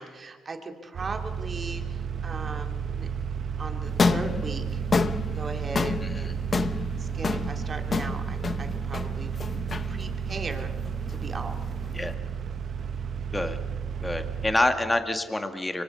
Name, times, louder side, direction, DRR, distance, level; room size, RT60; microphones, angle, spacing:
voice 1, 0.0-3.1 3.6-4.8 5.3-6.4 7.0-9.3 9.9-10.7 11.1-11.6, right 3 dB, 35° right, 5 dB, 2.8 m, -38 dB
sound 1, 0.9-14.5, right 7 dB, 55° right, 1.4 m, -32 dB
sound 2, 3.9-12.1, left 4 dB, 35° left, 0.9 m, -30 dB
voice 2, 6.0-6.3 11.9-12.1 13.3-13.6 14.0-15.8, left 1 dB, 15° left, 7 dB, 1.8 m, -27 dB
24.5 x 24.5 x 5.6 m, 1.5 s
cardioid pair, 90°, 0 cm